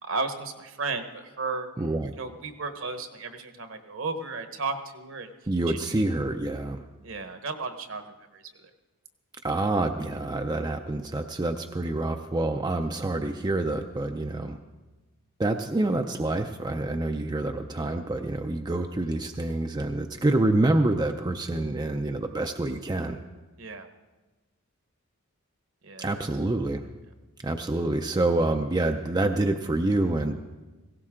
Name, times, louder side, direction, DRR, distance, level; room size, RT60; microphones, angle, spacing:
voice 1, 0.0-1.7 2.1-5.3 5.7-6.0 7.0-8.0 8.3-8.7 23.6-23.9 25.8-26.2, right 4 dB, 60° right, 7 dB, 1.2 m, -34 dB
voice 2, 1.8-2.1 5.5-6.8 9.4-14.6 15.4-23.2 26.0-26.9 27.4-30.3, right 2 dB, 20° right, 5 dB, 0.4 m, -27 dB
17.5 x 16.5 x 3.7 m, 1.2 s
head